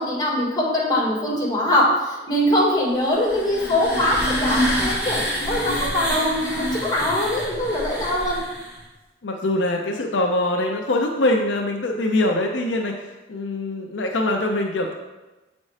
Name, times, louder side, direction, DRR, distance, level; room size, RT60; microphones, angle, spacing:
voice 1, 0.0-5.2 5.5-8.4, left 1 dB, 20° left, -5 dB, 1.8 m, -22 dB
sound 1, 3.0-8.8, equal, 5° right, 1.9 m, -27 dB
voice 2, 9.2-14.9, left 1 dB, 75° left, 1 dB, 0.6 m, -23 dB
7.3 x 4.1 x 3.2 m, 1.1 s
head